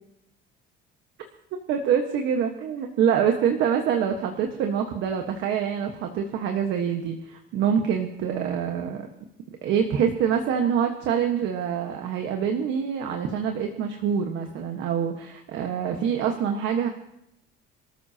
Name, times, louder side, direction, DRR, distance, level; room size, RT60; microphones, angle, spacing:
voice 1, 1.7-9.1 9.5-16.9, right 8 dB, 65° right, 4 dB, 1.4 m, -25 dB
27.5 x 14.0 x 2.9 m, 0.79 s
cardioid pair, 175°, 21 cm